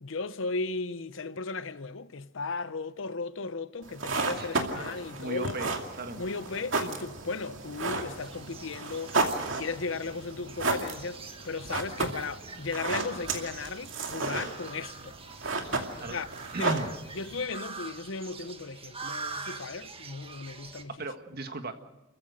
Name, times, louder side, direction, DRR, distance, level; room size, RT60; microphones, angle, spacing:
voice 1, 0.0-5.6 6.2-9.2 9.5-15.1 16.1-16.3 16.6-16.7 17.1-21.0, left 4 dB, 70° left, 0.8 m, -36 dB
sound 1, 3.8-17.4, right 3 dB, 75° right, 2.5 m, -33 dB
voice 2, 4.9-5.7 6.0-6.2 16.0-16.2 16.5-16.9 20.9-21.7, right 2 dB, 50° right, 1.7 m, -36 dB
sound 2, 8.2-20.8, right 4 dB, 30° right, 1.6 m, -45 dB
29.5 x 15.0 x 6.5 m
head